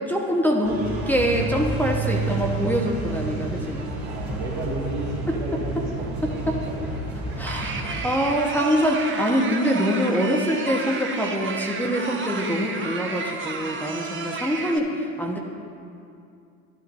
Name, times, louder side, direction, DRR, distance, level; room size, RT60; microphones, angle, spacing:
voice 1, 0.1-3.9 5.3-5.4 6.2-6.6 7.4-15.4, equal, 5° left, -1 dB, 1.0 m, -24 dB
sound 1, 0.6-8.0, right 2 dB, 90° right, 2.0 m, -30 dB
voice 2, 4.0-6.9, right 2 dB, 70° right, -4 dB, 2.1 m, -34 dB
sound 2, 7.5-14.8, right 4 dB, 30° right, 1.1 m, -32 dB
12.0 x 10.5 x 2.6 m, 2.5 s
hypercardioid pair, 70°, 43 cm